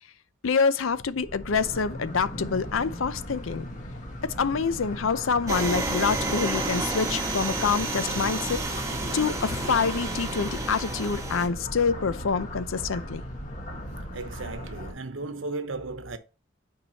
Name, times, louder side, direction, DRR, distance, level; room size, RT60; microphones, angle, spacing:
voice 1, 0.4-3.7 4.2-8.9 9.1-13.2, left 5 dB, 80° left, 0.6 m, -26 dB
sound 1, 0.9-14.9, equal, 40° left, 1.5 m, -38 dB
sound 2, 5.5-11.5, right 2 dB, 15° right, 1.3 m, -30 dB
voice 2, 14.1-16.2, right 3 dB, 70° right, 0.9 m, -35 dB
9.0 x 4.7 x 2.9 m
head